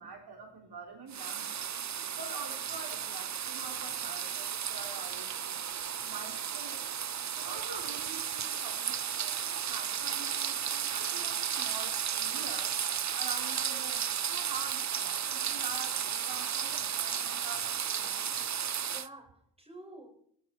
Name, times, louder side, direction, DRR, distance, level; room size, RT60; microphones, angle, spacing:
voice 1, 0.0-1.5 2.2-5.6 6.0-6.8 7.3-12.7 13.1-18.2, right 4 dB, 55° right, 3 dB, 3.6 m, -46 dB
sound 1, 1.1-19.1, right 8 dB, 40° right, 0.7 m, -34 dB
voice 2, 18.6-20.1, right 1 dB, 15° right, 2 dB, 6.6 m, -50 dB
21.0 x 15.5 x 4.6 m, 0.66 s
cardioid pair, 70°, 44 cm